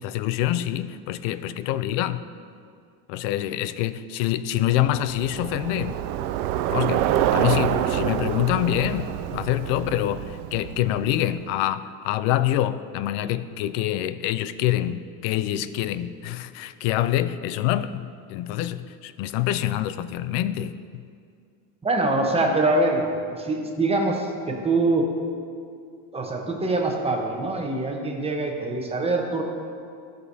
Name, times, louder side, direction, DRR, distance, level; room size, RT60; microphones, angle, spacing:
voice 1, 0.0-2.2 3.1-6.0 6.7-21.0, left 13 dB, 70° left, 14 dB, 0.5 m, -26 dB
Bicycle, 4.8-11.3, right 11 dB, 90° right, 0.5 m, -27 dB
voice 2, 21.8-23.0 23.3-25.1 26.1-29.4, right 2 dB, 15° right, 1 dB, 0.9 m, -24 dB
12.5 x 6.4 x 2.7 m, 2.3 s
cardioid pair, 130°, 43 cm